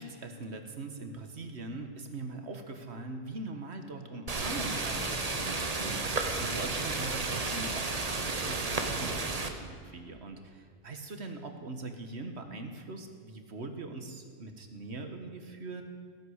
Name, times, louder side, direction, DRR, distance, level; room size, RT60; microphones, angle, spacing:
voice 1, 0.0-15.8, right 3 dB, 60° right, 6 dB, 1.8 m, -42 dB
sound 1, 4.3-9.5, right 3 dB, 30° right, 1.2 m, -32 dB
16.5 x 10.5 x 8.2 m, 2.1 s
omnidirectional pair, 1.3 m